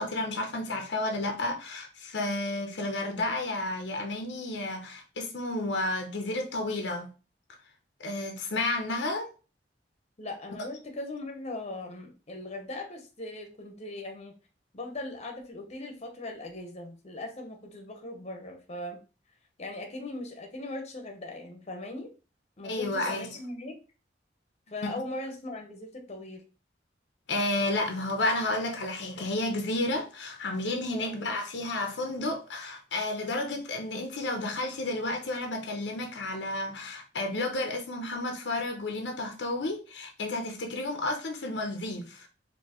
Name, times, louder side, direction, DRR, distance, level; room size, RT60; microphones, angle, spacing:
voice 1, 0.0-7.1 8.0-9.3 22.6-23.3 24.8-25.0 27.3-42.3, left 2 dB, 75° left, 0.7 m, -31 dB
voice 2, 10.2-14.3 14.7-19.0 19.6-22.1 22.6-23.8 24.7-26.4 30.9-31.1, left 2 dB, 35° left, 0.9 m, -39 dB
4.5 x 2.7 x 2.9 m
head